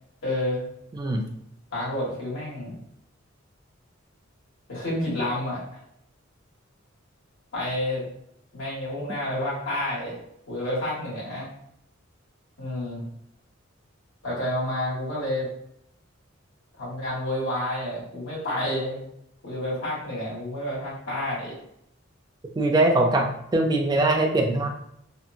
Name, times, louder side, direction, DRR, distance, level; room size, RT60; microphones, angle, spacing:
voice 1, 0.2-0.6 1.7-2.8 4.7-5.8 7.5-8.0 8.5-10.2 10.5-11.5 12.6-13.0 14.2-15.5 16.8-19.0 19.4-21.5, left 1 dB, 70° left, -7 dB, 1.4 m, -29 dB
voice 2, 0.9-1.2 22.6-24.7, right 2 dB, 20° right, 2 dB, 0.3 m, -22 dB
2.8 x 2.3 x 2.5 m, 0.75 s
head